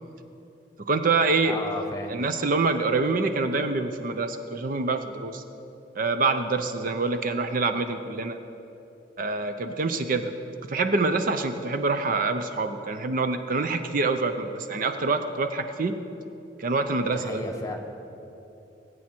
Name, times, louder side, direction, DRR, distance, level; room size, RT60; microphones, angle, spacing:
voice 1, 0.9-1.6 2.1-5.4 6.0-8.4 9.2-10.3 10.7-16.0 16.6-17.4, right 3 dB, 50° right, 8 dB, 0.6 m, -26 dB
voice 2, 1.4-2.1 17.1-17.8, left 2 dB, 20° left, 3 dB, 1.3 m, -33 dB
21.0 x 8.6 x 4.4 m, 2.9 s
head